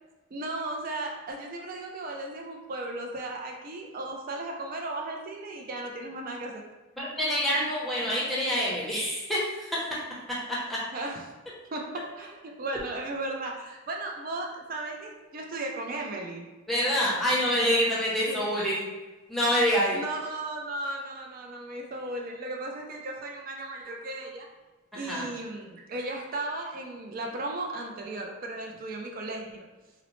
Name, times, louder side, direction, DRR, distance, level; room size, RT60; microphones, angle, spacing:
voice 1, 0.3-6.6 10.9-11.2 11.7-16.4 18.3-18.5 19.9-24.5 24.9-29.7, right 2 dB, 40° right, 1 dB, 0.4 m, -36 dB
voice 2, 7.0-9.8 10.5-10.8 16.7-18.8 19.3-20.0 24.9-25.3, equal, ahead, -7 dB, 0.6 m, -26 dB
3.8 x 2.0 x 3.0 m, 1.2 s
head